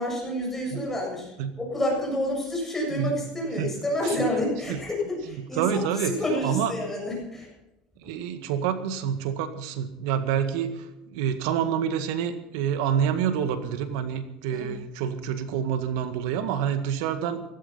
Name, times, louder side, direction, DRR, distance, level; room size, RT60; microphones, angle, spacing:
voice 1, 0.0-1.3 1.6-7.5 14.5-14.7, left 1 dB, 10° left, -2 dB, 7.4 m, -29 dB
voice 2, 5.6-6.2 6.4-6.7 8.0-17.4, right 8 dB, 80° right, 10 dB, 1.8 m, -27 dB
16.5 x 13.5 x 5.6 m, 0.96 s
supercardioid pair, 125°, 3 cm